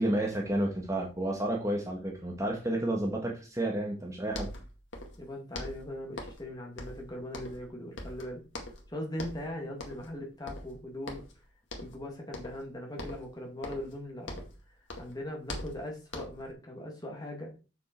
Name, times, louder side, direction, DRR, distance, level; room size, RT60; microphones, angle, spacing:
voice 1, 0.0-4.5, right 1 dB, 15° right, 0 dB, 1.6 m, -31 dB
sound 1, 4.0-4.1 4.3-5.2 5.5-6.5 6.8-7.7 8.0-8.9 9.2-9.5 9.8-10.2 10.5-11.4 11.7-12.0 12.3-12.7 13.0-14.6 14.9-16.5, left 1 dB, 70° left, 2.1 m, -42 dB
voice 2, 5.2-8.4 8.9-11.2 11.8-14.4 15.0-17.5, left 1 dB, 20° left, 0 dB, 2.3 m, -40 dB
7.5 x 6.6 x 4.5 m, 0.33 s
head